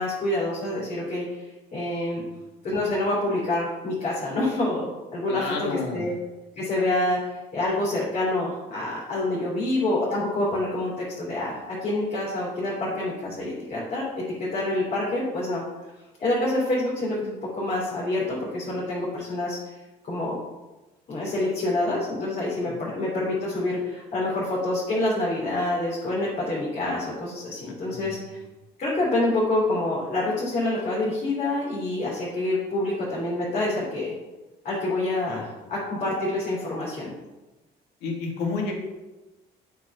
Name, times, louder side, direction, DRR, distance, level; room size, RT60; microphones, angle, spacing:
voice 1, 0.0-1.4 1.7-2.2 2.6-5.5 5.9-6.1 6.6-15.6 16.2-19.6 20.1-20.4 21.1-28.4 28.8-34.1 34.6-37.1, left 2 dB, 50° left, -7 dB, 3.1 m, -27 dB
voice 2, 5.3-6.2 22.6-22.9 27.9-28.2 35.3-35.4 38.0-38.7, left 4 dB, 90° left, 0 dB, 1.9 m, -31 dB
8.1 x 4.6 x 5.6 m, 1.1 s
cardioid pair, 110°, 17 cm